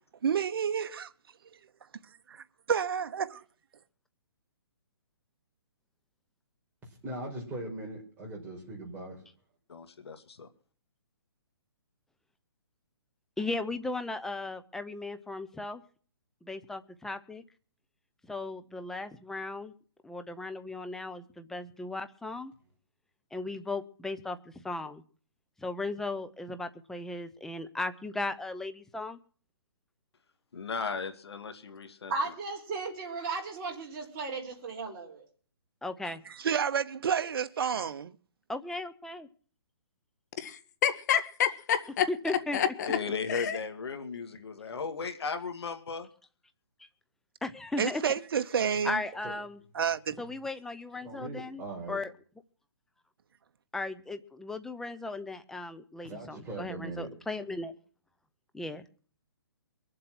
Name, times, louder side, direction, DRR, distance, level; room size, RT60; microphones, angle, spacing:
voice 1, 0.2-1.1 2.7-3.4 36.4-38.1 47.8-49.0 49.8-50.1, right 7 dB, 65° right, 1.0 m, -29 dB
voice 2, 7.0-9.2 49.2-49.3 51.0-52.0 56.0-57.1, right 2 dB, 15° right, 5.0 m, -40 dB
voice 3, 9.7-10.5 30.5-32.1 42.9-46.1, left 5 dB, 75° left, 2.3 m, -36 dB
voice 4, 13.4-15.8 16.4-17.4 18.3-19.7 20.0-22.5 23.3-24.4 24.6-25.0 25.6-29.2 35.8-36.2 38.5-39.3 42.1-42.7 47.4-48.0 48.8-49.6 50.2-51.6 51.9-52.1 53.7-57.7 58.5-58.9, left 2 dB, 5° left, 0.7 m, -36 dB
voice 5, 32.1-35.2, right 3 dB, 35° right, 4.6 m, -35 dB
voice 6, 40.4-42.9 43.3-43.6, left 9 dB, 40° left, 1.7 m, -29 dB
23.0 x 7.8 x 6.1 m
hypercardioid pair, 155°, 14 cm